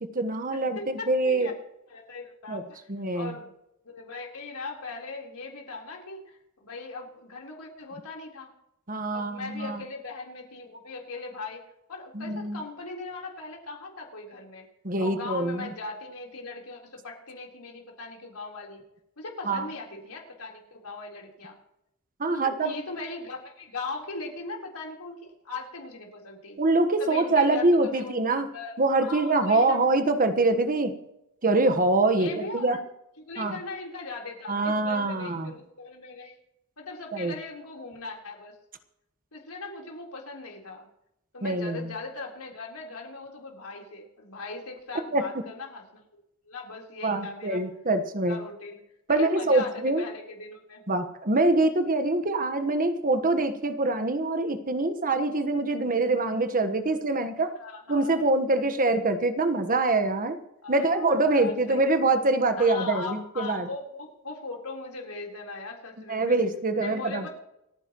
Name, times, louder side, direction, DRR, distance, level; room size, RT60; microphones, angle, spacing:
voice 1, 0.0-1.5 2.5-2.6 2.9-3.3 8.9-9.8 12.1-12.6 14.8-15.7 19.4-19.7 22.2-22.7 26.6-28.5 28.8-30.9 31.4-32.8 33.4-33.6 34.5-35.5 37.1-37.3 41.4-41.9 45.1-45.2 47.0-48.4 49.1-50.0 50.9-57.5 57.9-60.4 60.7-63.7 66.1-67.3, right 2 dB, 40° right, 9 dB, 1.3 m, -24 dB
voice 2, 0.5-1.5 1.9-3.5 3.8-8.5 9.1-11.6 11.9-14.6 15.0-18.8 19.2-21.6 22.3-26.6 27.0-28.2 28.5-28.7 29.0-29.8 32.1-32.8 33.2-36.4 36.8-38.5 39.3-40.9 41.3-46.0 46.5-47.6 48.3-48.8 49.1-50.8 53.7-53.8 57.6-58.1 60.6-61.8 62.6-66.4 66.8-67.3, left 3 dB, 90° left, 0 dB, 3.9 m, -39 dB
28.5 x 10.0 x 3.1 m, 0.83 s
head